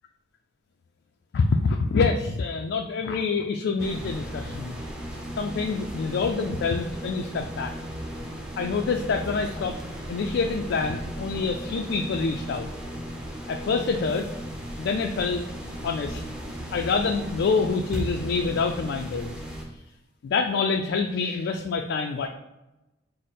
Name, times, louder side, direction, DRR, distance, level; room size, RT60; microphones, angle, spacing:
voice 1, 1.3-4.8 5.4-7.7 8.6-9.8 10.1-12.7 13.5-14.3 14.8-15.4 15.8-16.2 16.7-19.3 20.2-22.3, left 4 dB, 65° left, 3 dB, 0.3 m, -26 dB
sound 1, 3.8-19.6, equal, 5° right, 0.6 m, -36 dB
4.9 x 2.0 x 4.2 m, 0.99 s
head